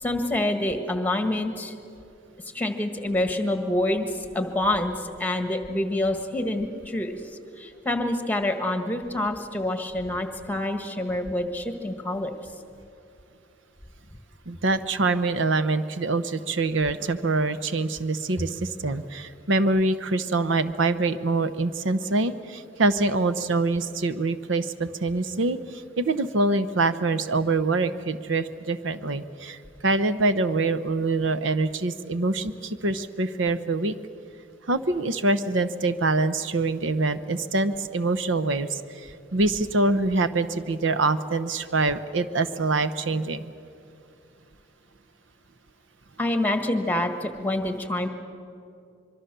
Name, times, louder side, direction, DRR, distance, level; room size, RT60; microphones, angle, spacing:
voice 1, 0.0-1.7 2.5-7.2 7.6-12.3 46.2-48.1, left 1 dB, 10° left, 6 dB, 1.5 m, -27 dB
voice 2, 14.5-25.6 26.0-29.6 29.8-33.9 34.7-43.5, right 3 dB, 80° right, 12 dB, 0.8 m, -25 dB
25.0 x 23.0 x 6.8 m, 2.6 s
head